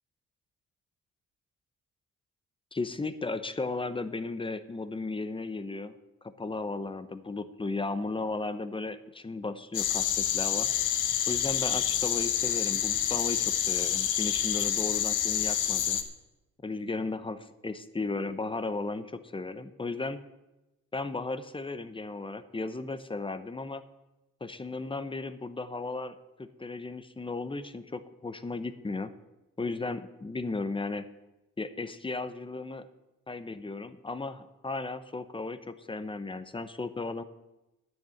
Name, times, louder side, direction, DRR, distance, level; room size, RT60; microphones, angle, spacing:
voice 1, 2.7-5.9 6.2-10.7 11.3-16.0 16.6-20.2 20.9-23.8 24.4-29.1 29.6-31.1 31.6-32.9 33.3-37.2, left 3 dB, 15° left, 12 dB, 0.8 m, -35 dB
sound 1, 9.7-16.0, left 10 dB, 85° left, 1.1 m, -28 dB
10.0 x 6.5 x 8.4 m, 1.0 s
cardioid pair, 90°, 30 cm